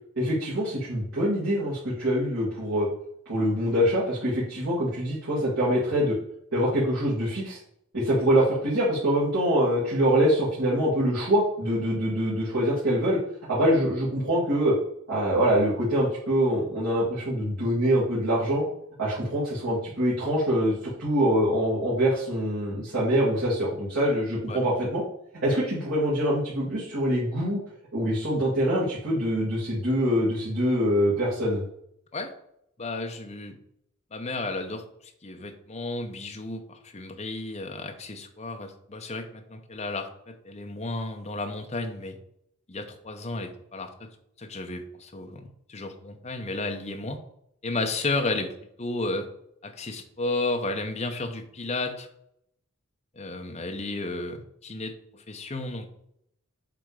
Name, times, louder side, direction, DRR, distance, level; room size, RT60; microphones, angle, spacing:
voice 1, 0.2-2.9 3.3-6.1 6.5-7.6 7.9-13.2 13.5-14.7 15.1-18.6 19.0-25.0 25.4-27.6 27.9-31.6, equal, 60° right, -9 dB, 2.3 m, -24 dB
voice 2, 32.8-33.6 34.1-34.8 35.2-42.2 42.7-44.1 44.4-47.2 47.6-48.5 48.8-49.3 49.6-52.1 53.1-56.0, left 2 dB, 30° left, 5 dB, 0.8 m, -33 dB
7.8 x 3.5 x 4.8 m, 0.74 s
head